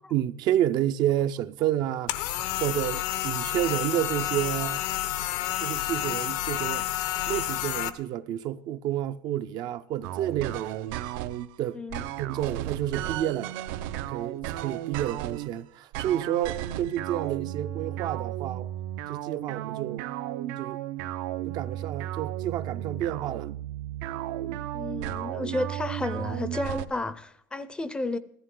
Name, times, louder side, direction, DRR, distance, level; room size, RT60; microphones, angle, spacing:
voice 1, 0.1-2.2 2.6-4.8 5.6-6.9 7.3-10.9 11.6-11.8 12.2-13.5 14.1-18.7 19.1-20.1 20.6-20.8 21.5-23.5, right 12 dB, 45° right, 0.4 m, -30 dB
sound 1, 2.1-7.9, left 14 dB, 80° left, 0.9 m, -30 dB
sound 2, 10.0-11.5 11.9-15.5 15.9-26.9, right 13 dB, 80° right, 0.7 m, -34 dB
voice 2, 11.7-12.1 24.7-28.2, left 2 dB, 10° left, 0.5 m, -32 dB
15.5 x 14.0 x 3.8 m
cardioid pair, 170°, 10 cm